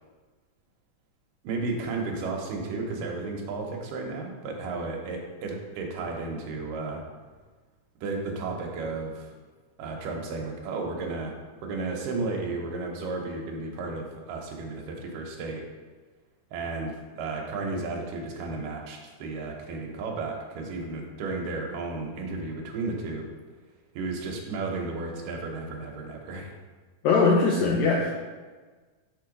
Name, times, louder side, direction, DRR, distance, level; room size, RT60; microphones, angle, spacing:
voice 1, 1.4-7.0 8.0-9.3 9.8-11.3 11.6-15.6 16.5-23.2 23.9-26.5, right 3 dB, 85° right, 0 dB, 2.5 m, -33 dB
voice 2, 27.0-28.1, left 4 dB, 80° left, -2 dB, 1.6 m, -21 dB
6.4 x 3.7 x 5.0 m, 1.4 s
omnidirectional pair, 3.8 m